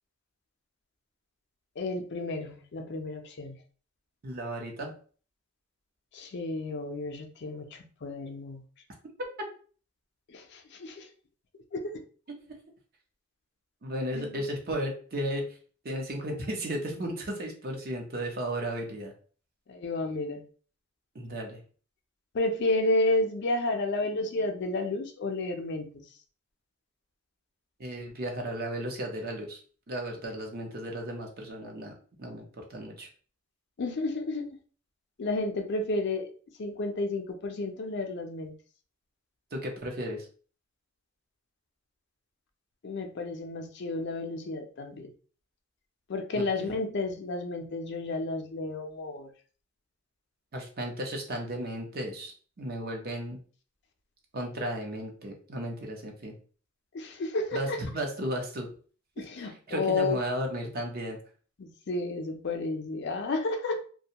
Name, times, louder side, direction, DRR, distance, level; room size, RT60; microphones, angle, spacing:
voice 1, 1.8-3.6 6.1-8.6 10.3-11.1 11.7-11.9 14.1-14.4 19.7-20.4 22.3-25.9 33.8-34.5 35.2-36.3 36.6-38.5 42.8-45.1 46.1-49.3 56.9-57.8 59.2-60.2 61.6-63.8, left 2 dB, 55° left, 5 dB, 0.5 m, -31 dB
voice 2, 4.2-4.9 13.8-15.4 15.8-19.1 21.1-21.6 27.8-29.6 29.9-33.1 39.5-40.3 46.3-46.8 50.5-53.4 54.3-56.3 57.5-58.7 59.2-61.2, right 1 dB, 45° right, 1 dB, 0.7 m, -34 dB
2.5 x 2.2 x 2.8 m, 0.41 s
head